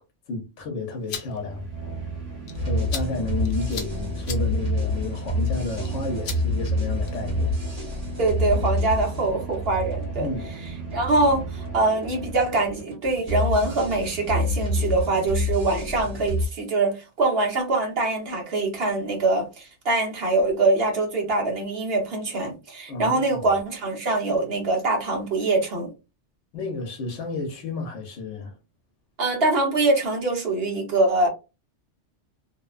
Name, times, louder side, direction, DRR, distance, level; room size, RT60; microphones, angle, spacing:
voice 1, 0.3-1.7 2.6-7.6 10.2-10.5 22.9-23.4 26.5-28.6, left 3 dB, 75° left, 1.0 m, -31 dB
sound 1, 0.8-7.4, left 6 dB, 55° left, 0.7 m, -41 dB
sound 2, 1.2-12.9, right 4 dB, 85° right, 1.3 m, -35 dB
sound 3, 2.5-16.5, left 1 dB, 30° right, 1.3 m, -28 dB
voice 2, 8.2-10.3 10.9-25.9 29.2-31.3, right 2 dB, 60° right, 1.1 m, -23 dB
2.7 x 2.1 x 2.4 m
omnidirectional pair, 1.2 m